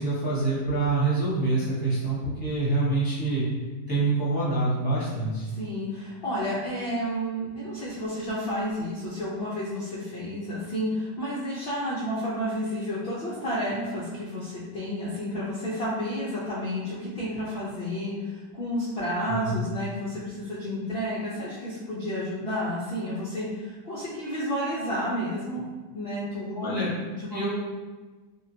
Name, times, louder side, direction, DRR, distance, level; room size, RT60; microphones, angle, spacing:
voice 1, 0.0-3.4 3.9-5.5 19.2-19.5 26.5-26.9 27.3-27.5, right 3 dB, 20° left, -7 dB, 0.5 m, -26 dB
voice 2, 5.6-25.6 25.9-26.8 27.1-27.5, equal, 80° left, -8 dB, 0.5 m, -31 dB
3.6 x 2.2 x 2.6 m, 1.3 s
omnidirectional pair, 1.8 m